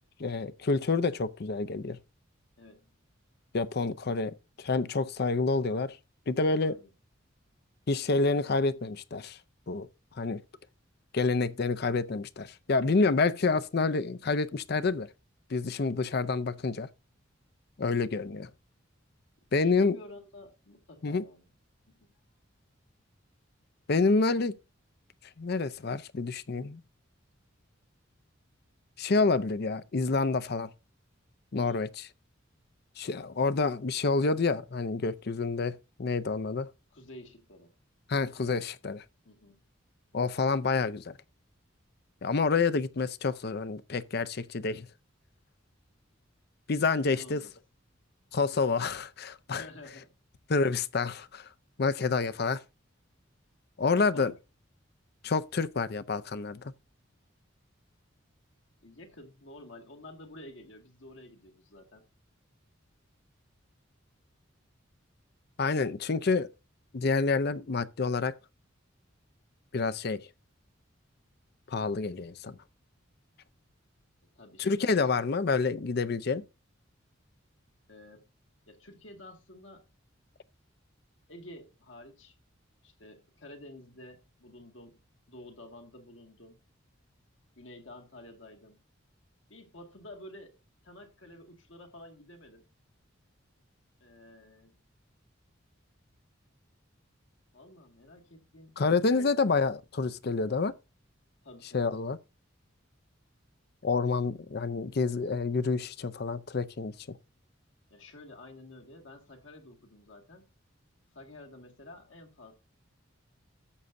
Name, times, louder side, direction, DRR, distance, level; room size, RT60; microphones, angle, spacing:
voice 1, 0.2-2.0 3.5-6.0 6.3-6.8 7.9-9.4 9.7-9.9 10.2-10.4 11.1-15.1 15.5-16.9 17.8-18.5 19.5-20.0 21.0-21.2 23.9-24.5 25.4-26.8 29.0-30.7 31.5-31.9 33.0-36.7 38.1-39.0 40.1-41.1 42.2-44.9 46.7-47.4 48.3-49.6 50.5-51.5 51.8-52.6 53.8-54.3 55.2-56.7 65.6-66.5 66.9-68.3 69.7-70.2 71.7-72.5 74.6-76.4 98.8-100.7 101.7-102.2 103.8-107.2, left 4 dB, 50° left, 0.6 m, -28 dB
voice 2, 2.6-2.9 6.6-6.9 19.6-21.5 21.9-22.1 31.5-31.9 36.9-37.7 39.2-39.6 47.0-47.5 49.5-50.1 53.8-54.3 58.8-62.0 74.3-75.1 77.9-78.3 78.7-79.9 81.3-82.3 82.8-85.0 85.3-86.6 87.6-88.8 89.5-90.6 90.8-92.7 94.0-94.7 97.5-98.8 99.1-99.3 101.4-101.9 107.9-110.5 111.1-112.5, left 1 dB, 70° left, 2.0 m, -50 dB
13.0 x 8.1 x 2.6 m
head